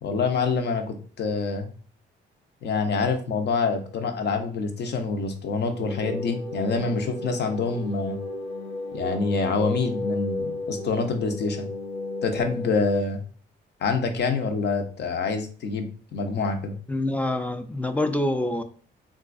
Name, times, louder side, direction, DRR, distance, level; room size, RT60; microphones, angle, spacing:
voice 1, 0.0-1.7 2.6-8.2 8.9-11.7 12.2-13.2 13.8-16.7, left 4 dB, 60° left, 6 dB, 0.7 m, -26 dB
sound 1, 5.8-12.8, left 2 dB, 90° left, 0.9 m, -33 dB
voice 2, 16.9-18.6, left 1 dB, 5° left, 8 dB, 0.4 m, -26 dB
3.8 x 2.4 x 2.5 m, 0.42 s
cardioid pair, 90°, 20 cm